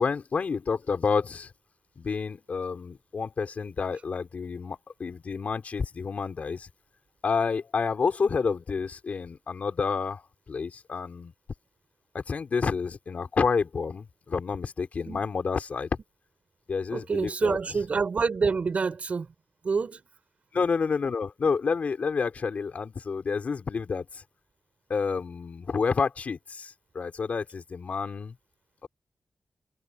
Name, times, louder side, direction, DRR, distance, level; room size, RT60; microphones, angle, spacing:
voice 1, 0.0-1.5 2.0-6.7 7.2-10.2 10.5-11.3 12.1-15.9 16.7-17.6 20.5-24.2 24.9-28.3 28.8-28.9, left 5 dB, 55° left, 3.8 m, -29 dB
voice 2, 16.9-19.3 19.6-20.1, right 5 dB, 50° right, 5.7 m, -27 dB
wide cardioid pair, 155°, 3 cm